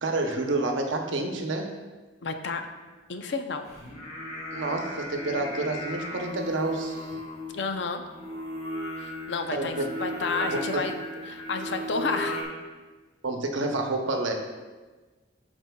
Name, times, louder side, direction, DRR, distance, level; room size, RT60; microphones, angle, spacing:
voice 1, 0.0-1.7 4.5-7.2 9.5-9.9 10.5-10.8 13.2-14.3, right 2 dB, 75° right, 3 dB, 0.9 m, -29 dB
voice 2, 2.2-2.6 3.1-3.6 7.5-8.0 9.0-10.9 11.3-12.4, left 4 dB, 65° left, 6 dB, 0.6 m, -31 dB
Singing, 3.7-12.4, equal, 35° left, 1.4 m, -35 dB
12.0 x 4.4 x 2.3 m, 1.3 s
head